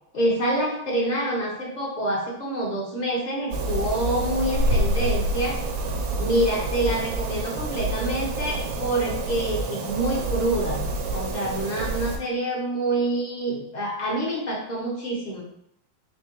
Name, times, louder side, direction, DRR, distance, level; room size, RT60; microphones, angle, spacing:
voice 1, 0.1-5.6 6.2-10.8 11.1-15.4, right 1 dB, 45° left, -2 dB, 0.5 m, -26 dB
sound 1, 3.5-12.2, right 1 dB, 70° right, 1.1 m, -27 dB
4.4 x 3.5 x 2.9 m, 0.72 s
omnidirectional pair, 2.0 m